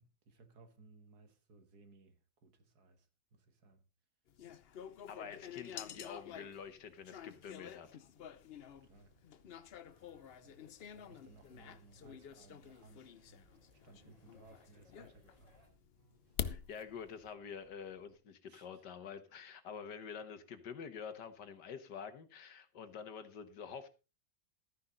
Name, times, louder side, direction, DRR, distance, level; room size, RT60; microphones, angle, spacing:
voice 1, 0.0-3.8 5.2-5.7 8.7-9.2 9.7-9.8 10.4-15.6 18.5-18.8, right 3 dB, 60° right, 1.9 m, -62 dB
sound 1, 4.3-17.3, left 8 dB, 85° left, 0.5 m, -48 dB
voice 2, 5.1-7.9 16.4-23.9, left 6 dB, 70° left, 1.7 m, -47 dB
sound 2, 8.1-18.1, right 2 dB, 85° right, 8.8 m, -74 dB
sound 3, 9.8-15.7, left 2 dB, 20° left, 2.9 m, -70 dB
13.5 x 9.9 x 3.8 m
omnidirectional pair, 2.0 m